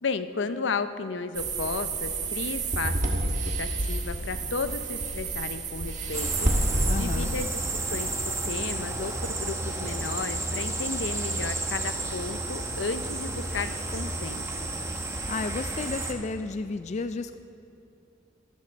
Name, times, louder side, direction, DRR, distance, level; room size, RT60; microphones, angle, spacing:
voice 1, 0.0-3.3 3.6-7.6 7.9-14.4, left 4 dB, 75° left, 11 dB, 0.7 m, -34 dB
sound 1, 1.3-7.0, right 2 dB, 40° right, 1.4 m, -29 dB
sound 2, 6.1-16.1, right 2 dB, 15° right, 1.1 m, -32 dB
voice 2, 6.9-7.3 15.3-17.4, left 3 dB, 35° left, 10 dB, 0.3 m, -32 dB
13.0 x 10.5 x 6.8 m, 2.8 s
head